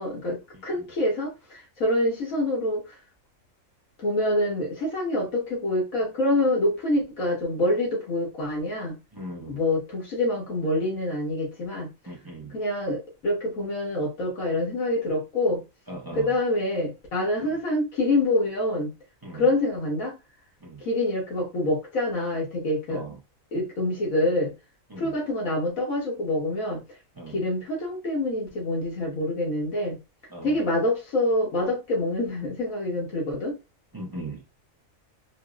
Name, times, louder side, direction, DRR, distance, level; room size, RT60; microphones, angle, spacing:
voice 1, 0.0-1.3 1.8-2.8 4.0-9.0 9.5-11.9 12.5-15.6 16.1-18.9 19.3-20.2 20.9-23.0 23.5-24.5 25.0-26.8 27.3-30.0 30.4-33.6, left 1 dB, 80° left, 1.8 m, -26 dB
voice 2, 9.1-9.6 12.1-12.6 15.9-16.3 19.2-19.4 20.6-20.8 22.9-23.2 24.9-25.1 27.2-27.4 30.3-30.6 33.9-34.4, right 2 dB, 30° right, 0.4 m, -38 dB
4.5 x 2.0 x 2.3 m
omnidirectional pair, 1.4 m